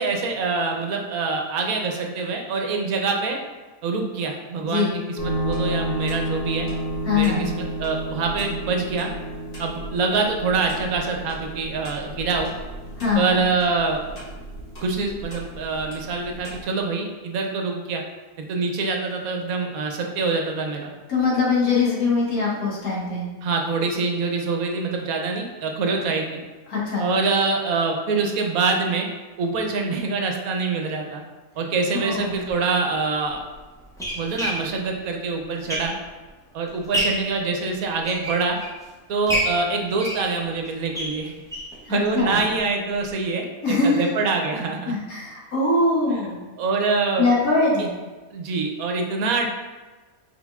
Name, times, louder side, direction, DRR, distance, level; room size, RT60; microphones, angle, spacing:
voice 1, 0.0-3.4 3.8-6.7 7.1-7.5 7.8-9.1 9.6-12.5 13.2-14.0 14.8-18.0 18.4-20.9 23.4-26.4 27.0-29.1 29.4-31.2 31.6-33.4 34.2-35.9 36.5-38.6 39.1-41.3 41.9-44.9 46.6-47.3 48.3-49.5, right 4 dB, 75° right, 2 dB, 1.1 m, -25 dB
voice 2, 4.6-5.0 7.0-7.5 13.0-13.4 21.1-23.3 26.7-27.0 32.0-32.3 41.9-42.4 43.6-44.0 44.9-46.4 47.2-47.9, left 3 dB, 85° left, -6 dB, 1.8 m, -22 dB
sound 1, 5.2-16.6, right 1 dB, 30° left, 1.4 m, -32 dB
sound 2, 32.5-32.6 33.3-36.3 36.7-37.3 37.8-38.8 39.3-41.8 42.2-42.3 42.5-42.6 43.0-43.1, equal, 5° left, 0.4 m, -29 dB
6.1 x 3.5 x 2.4 m, 1.3 s
omnidirectional pair, 1.5 m